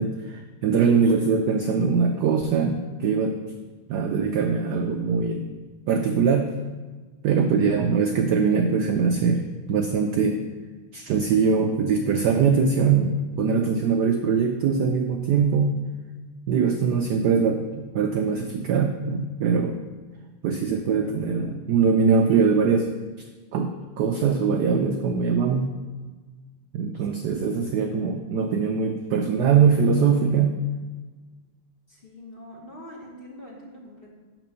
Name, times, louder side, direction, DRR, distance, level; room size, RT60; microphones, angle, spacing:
voice 1, 0.0-3.4 3.9-5.5 5.9-6.5 7.2-10.4 10.9-15.7 16.5-19.8 20.4-22.9 23.5-25.7 26.7-30.6, right 5 dB, 80° right, 5 dB, 0.9 m, -22 dB
voice 2, 31.9-34.1, left 1 dB, 35° left, -3 dB, 1.1 m, -43 dB
6.0 x 6.0 x 6.6 m, 1.4 s
omnidirectional pair, 2.4 m